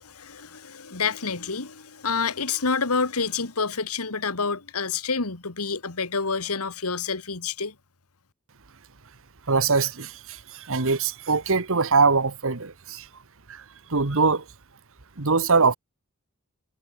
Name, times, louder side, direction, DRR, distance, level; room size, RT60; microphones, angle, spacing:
voice 1, 0.0-7.7, left 5 dB, 75° left, 1.9 m, -28 dB
voice 2, 9.5-13.1 13.5-13.6 13.9-14.4 15.2-15.8, right 4 dB, 65° right, 1.5 m, -22 dB
head